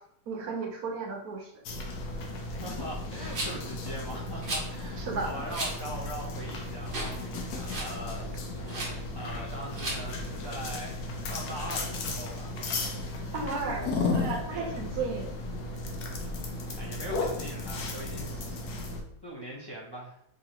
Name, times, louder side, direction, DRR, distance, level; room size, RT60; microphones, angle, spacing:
voice 1, 0.3-1.5 5.0-5.3 13.3-15.3, right 4 dB, 65° right, 1 dB, 1.3 m, -34 dB
sound 1, 1.6-19.0, left 2 dB, 70° left, 1.3 m, -35 dB
voice 2, 2.6-8.8 9.1-12.5 13.3-13.5 14.5-14.8 16.8-18.8 19.2-20.2, equal, 25° left, -5 dB, 0.5 m, -41 dB
Rattle, 3.3-3.7 4.4-4.7 5.5-5.7 6.2-6.3 6.9-7.2 7.5-7.9 8.7-8.9 9.7-10.0, right 2 dB, 35° right, 1.0 m, -34 dB
5.0 x 3.1 x 2.9 m, 0.71 s
omnidirectional pair, 1.8 m